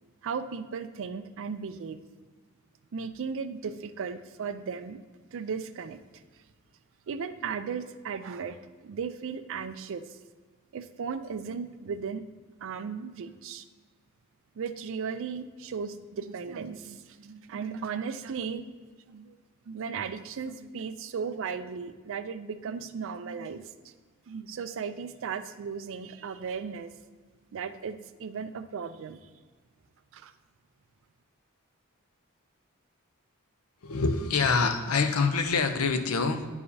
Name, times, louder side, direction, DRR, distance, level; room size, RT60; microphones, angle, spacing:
voice 1, 0.2-2.0 2.9-5.0 5.3-6.0 6.3-6.4 7.1-10.2 10.7-12.2 12.6-13.7 14.6-18.6 19.1-19.4 19.6-23.9 24.3-26.9 27.5-29.3 30.1-30.3, right 6 dB, 65° right, 10 dB, 0.4 m, -36 dB
voice 2, 33.8-36.5, left 4 dB, 80° left, 8 dB, 0.6 m, -26 dB
9.7 x 4.8 x 2.7 m, 1.5 s
head